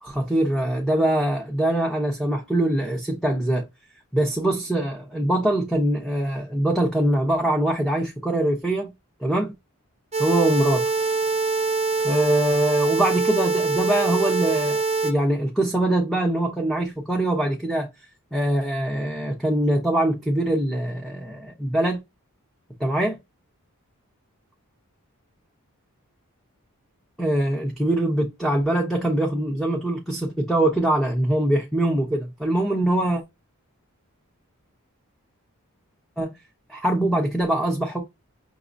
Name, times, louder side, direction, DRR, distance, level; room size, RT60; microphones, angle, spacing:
voice 1, 0.0-3.7 4.1-8.9 9.2-9.5 10.2-10.8 12.0-17.9 18.3-22.0 22.8-23.2 27.2-33.2 36.2-36.3 36.7-38.0, right 1 dB, ahead, 1.0 m, -23 dB
sound 1, 10.1-15.1, right 4 dB, 30° right, 0.8 m, -24 dB
6.0 x 2.9 x 2.6 m
head